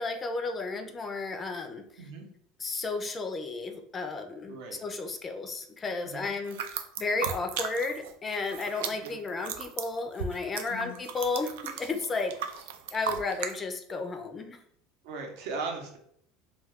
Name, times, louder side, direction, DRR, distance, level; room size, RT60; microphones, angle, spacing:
voice 1, 0.0-1.8 2.6-4.6 4.8-12.3 12.9-14.6, left 3 dB, 25° left, 5 dB, 0.4 m, -33 dB
voice 2, 4.5-4.8 6.0-6.3 9.0-9.2 10.7-10.9 15.0-16.0, right 3 dB, 70° right, 2 dB, 0.8 m, -38 dB
sound 1, 6.4-8.1 8.4-13.5, right 8 dB, 90° right, 0.3 m, -36 dB
2.3 x 2.3 x 3.4 m, 0.66 s
supercardioid pair, 125°, 0 cm